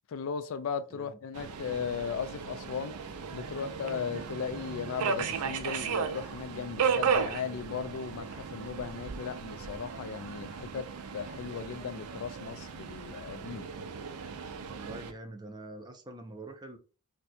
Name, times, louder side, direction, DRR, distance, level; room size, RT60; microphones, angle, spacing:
voice 1, 0.1-3.1 3.3-10.9 11.1-13.7, left 6 dB, 65° left, 0.3 m, -37 dB
Subway metro underground, 1.3-15.1, right 6 dB, 85° right, 0.4 m, -35 dB
voice 2, 14.7-16.8, right 2 dB, 20° right, 0.5 m, -44 dB
2.7 x 2.2 x 4.0 m
head